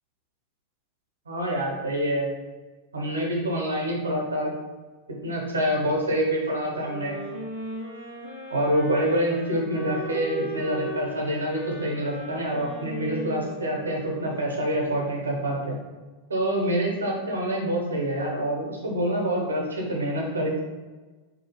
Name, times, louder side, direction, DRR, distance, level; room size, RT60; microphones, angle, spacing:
voice 1, 1.3-2.3 2.9-4.5 5.2-7.2 8.5-15.8 16.3-20.5, equal, 75° right, -1 dB, 0.7 m, -26 dB
sound 1, 6.8-14.8, equal, 75° left, 0.9 m, -37 dB
2.7 x 2.4 x 3.0 m, 1.3 s
figure-of-eight pair, 90°, 0 cm